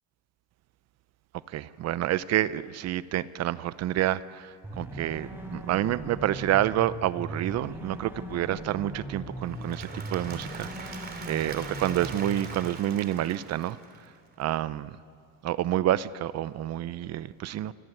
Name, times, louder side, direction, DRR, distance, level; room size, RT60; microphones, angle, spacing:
voice 1, 1.5-11.0 11.3-13.8 14.4-15.0 15.4-17.7, right 13 dB, 50° right, 16 dB, 0.8 m, -28 dB
sound 1, 4.6-12.6, right 1 dB, 5° right, 4.7 m, -39 dB
Applause / Crowd, 9.4-14.3, right 4 dB, 30° right, 3.3 m, -43 dB
28.0 x 24.5 x 8.0 m, 2.3 s
cardioid pair, 135°, 34 cm